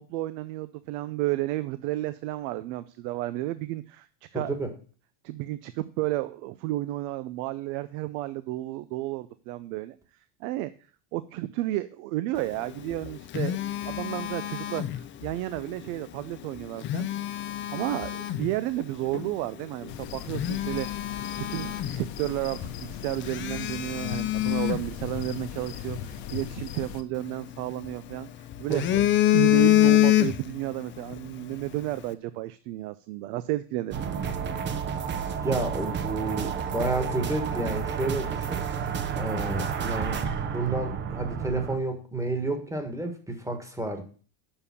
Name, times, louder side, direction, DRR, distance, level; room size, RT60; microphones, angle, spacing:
voice 1, 0.0-4.1 4.3-4.5 5.2-10.0 10.4-10.7 11.1-13.6 13.9-17.1 17.7-20.9 21.4-28.3 28.6-28.8 29.3-34.0, right 16 dB, 75° right, 14 dB, 0.6 m, -32 dB
voice 2, 4.3-4.7 28.7-29.0 35.4-38.6 39.2-40.2 40.5-44.0, right 2 dB, 5° right, 5 dB, 1.5 m, -30 dB
Telephone, 12.8-15.4 16.6-18.5 19.1-19.3 19.8-19.9 20.3-22.4 22.6-22.7 23.2-25.6 27.2-28.1 28.5-30.7 31.0-31.2, left 14 dB, 30° left, 0.4 m, -25 dB
sound 1, 19.9-27.0, left 8 dB, 75° left, 1.2 m, -39 dB
sound 2, 33.9-41.8, right 7 dB, 25° right, 0.6 m, -31 dB
7.1 x 5.4 x 6.9 m, 0.41 s
cardioid pair, 145°, 44 cm